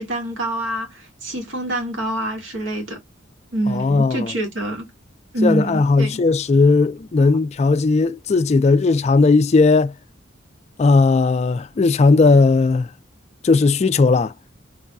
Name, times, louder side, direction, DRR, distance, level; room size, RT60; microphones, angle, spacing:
voice 1, 0.0-3.0 3.5-4.8 5.3-6.2 7.2-7.3, right 1 dB, 75° right, 1.4 m, -25 dB
voice 2, 3.7-4.3 5.4-9.9 10.8-12.9 13.4-14.3, left 3 dB, 35° left, 0.3 m, -16 dB
5.3 x 2.6 x 2.2 m
head